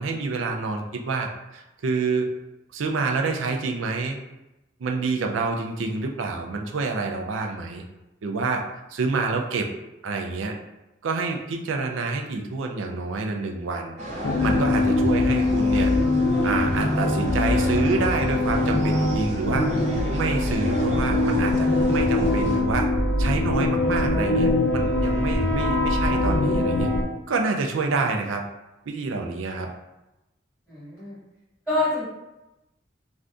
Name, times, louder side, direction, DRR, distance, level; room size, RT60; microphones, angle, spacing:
voice 1, 0.0-2.3 2.7-4.2 4.8-7.8 8.2-8.6 8.9-9.7 10.0-10.6 11.0-14.0 14.2-15.9 16.4-19.7 20.1-22.9 23.2-26.9 27.3-28.4 28.9-29.7, right 3 dB, 90° right, 3 dB, 0.4 m, -27 dB
sound 1, 14.0-22.6, equal, 35° right, 0.6 m, -33 dB
sound 2, 14.2-27.0, left 2 dB, 80° left, 0.5 m, -22 dB
voice 2, 30.7-31.2 31.7-32.0, left 2 dB, 5° right, -11 dB, 1.1 m, -26 dB
2.6 x 2.4 x 3.4 m, 0.98 s
head